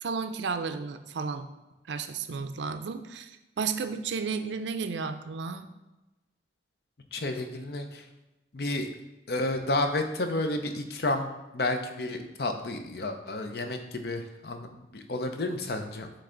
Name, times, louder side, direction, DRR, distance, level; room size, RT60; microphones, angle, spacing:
voice 1, 0.0-1.5 1.9-5.7, right 5 dB, 85° right, 9 dB, 0.5 m, -33 dB
voice 2, 7.1-8.0 8.5-8.9 9.3-11.3 11.5-16.1, left 2 dB, 60° left, 6 dB, 0.6 m, -31 dB
7.8 x 3.3 x 3.8 m, 1.0 s
head